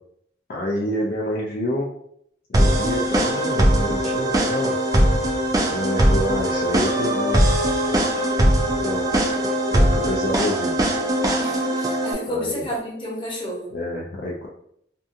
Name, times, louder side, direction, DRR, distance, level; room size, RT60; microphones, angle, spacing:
voice 1, 0.5-1.9 2.5-4.7 5.7-7.5 8.8-9.3 9.7-10.7 12.3-12.7 13.7-14.5, left 1 dB, 55° left, -3 dB, 0.4 m, -28 dB
sound 1, 2.5-12.1, right 1 dB, 20° right, 0.3 m, -20 dB
voice 2, 11.4-13.7, left 1 dB, 30° left, -5 dB, 0.9 m, -30 dB
2.6 x 2.5 x 2.5 m, 0.71 s
head